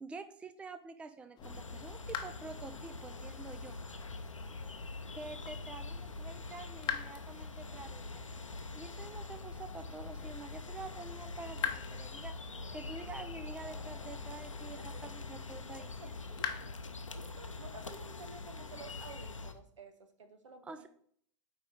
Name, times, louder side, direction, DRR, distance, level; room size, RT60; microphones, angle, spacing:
voice 1, 0.0-3.7 5.1-8.2 8.7-11.6 11.9-12.4 12.7-16.1 20.6-20.9, right 3 dB, 5° right, 0.4 m, -48 dB
sound 1, 1.4-19.5, left 3 dB, 85° left, 0.6 m, -44 dB
sound 2, 1.4-19.6, left 9 dB, 25° left, 0.8 m, -47 dB
voice 2, 14.7-15.1 15.8-16.8 17.1-20.8, right 4 dB, 75° right, 1.2 m, -53 dB
8.6 x 3.9 x 5.0 m
figure-of-eight pair, 95°, 16 cm